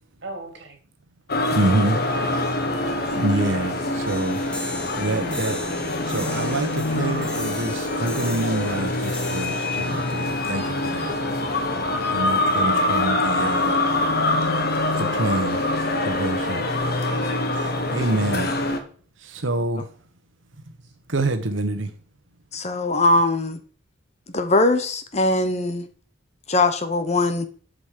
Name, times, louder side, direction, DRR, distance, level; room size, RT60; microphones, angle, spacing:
voice 1, 0.2-0.8 2.1-3.4 17.1-17.7 20.8-20.9, right 2 dB, 65° right, 3.0 m, -42 dB
sound 1, 1.3-18.8, left 2 dB, 55° left, 1.5 m, -24 dB
voice 2, 1.5-2.0 3.1-5.6 6.0-11.2 12.1-13.8 15.0-15.7 16.0-16.7 17.9-18.5 19.2-19.9 21.1-21.9, right 2 dB, 85° right, 1.1 m, -26 dB
sound 2, 4.1-11.1, left 1 dB, 5° left, 1.2 m, -38 dB
voice 3, 22.5-23.6 24.3-25.9 26.5-27.5, left 2 dB, 35° left, 1.0 m, -21 dB
8.3 x 5.1 x 7.5 m
head